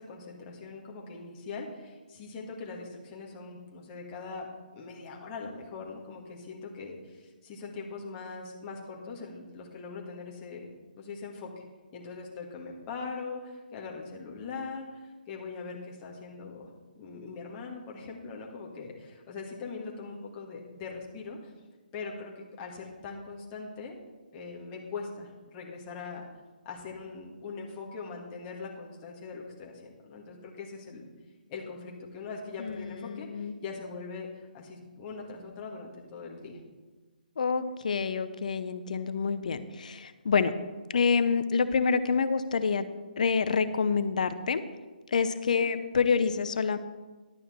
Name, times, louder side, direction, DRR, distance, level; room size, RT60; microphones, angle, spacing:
voice 1, 0.0-4.5 4.7-10.7 11.0-11.6 11.9-16.7 17.0-21.5 21.9-24.0 24.3-26.2 26.6-31.0 31.5-36.6 45.6-45.7, left 4 dB, 25° left, -1 dB, 1.9 m, -41 dB
voice 2, 32.6-33.5 37.4-40.5 40.9-42.9 43.2-44.6 45.1-46.8, left 5 dB, 50° left, 12 dB, 0.7 m, -27 dB
11.5 x 9.2 x 4.4 m, 1.3 s
figure-of-eight pair, 140°, 5 cm